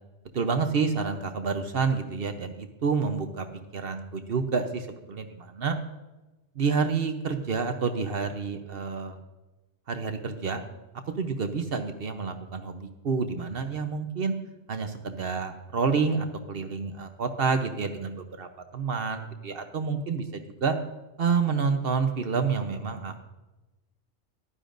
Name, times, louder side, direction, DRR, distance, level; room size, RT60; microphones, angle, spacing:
voice 1, 0.3-3.5 3.7-5.8 6.6-9.2 9.9-10.6 11.2-14.3 14.7-20.8 21.2-23.2, right 5 dB, 60° right, 7 dB, 1.0 m, -28 dB
15.0 x 11.5 x 2.6 m, 1.1 s
omnidirectional pair, 1.1 m